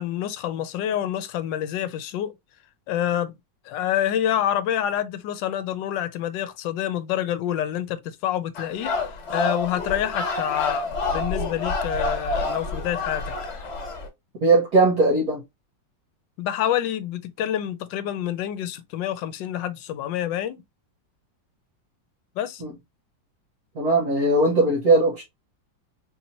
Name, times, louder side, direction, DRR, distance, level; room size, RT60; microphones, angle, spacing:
voice 1, 0.0-2.3 2.9-3.4 3.6-8.9 9.3-13.2 16.4-20.6 22.4-22.6, left 11 dB, 80° left, 1.3 m, -27 dB
sound 1, 8.6-14.1, left 3 dB, 40° left, 1.5 m, -28 dB
voice 2, 14.4-15.4 22.6-22.7 23.7-25.2, right 2 dB, 60° right, 1.5 m, -19 dB
4.1 x 2.8 x 2.8 m
omnidirectional pair, 2.0 m